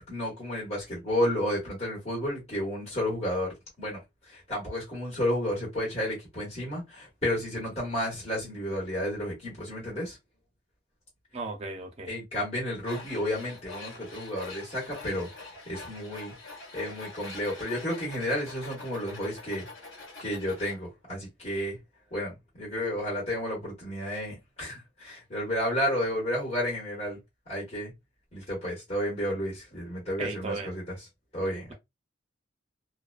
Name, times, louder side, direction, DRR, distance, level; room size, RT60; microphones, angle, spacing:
voice 1, 0.1-4.0 4.3-10.2 12.1-15.3 15.7-16.3 16.7-19.7 20.2-21.8 22.1-27.2 27.5-27.9 28.3-30.8 31.3-31.7, equal, 35° left, 1.3 m, -31 dB
voice 2, 11.3-12.1 30.2-30.8, right 3 dB, 35° right, 0.6 m, -36 dB
Tools, 12.8-20.8, left 3 dB, 90° left, 1.1 m, -45 dB
2.4 x 2.2 x 2.4 m
head